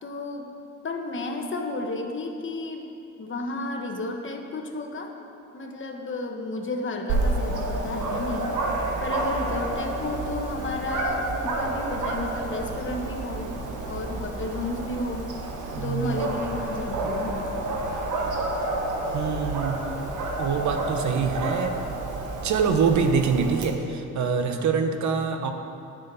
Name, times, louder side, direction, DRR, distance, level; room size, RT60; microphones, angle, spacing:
voice 1, 0.0-0.5 0.8-2.9 3.2-5.1 5.5-8.6 9.0-13.5 13.9-15.4 15.7-17.6 24.1-24.7, left 2 dB, 40° left, 3 dB, 1.4 m, -32 dB
Dog, 7.1-23.6, right 2 dB, 85° right, 1.5 m, -30 dB
voice 2, 15.7-16.2 19.1-19.8 20.4-21.8 22.4-25.5, right 5 dB, 70° right, 5 dB, 1.1 m, -25 dB
9.8 x 6.5 x 8.2 m, 2.6 s
cardioid pair, 90°, 30 cm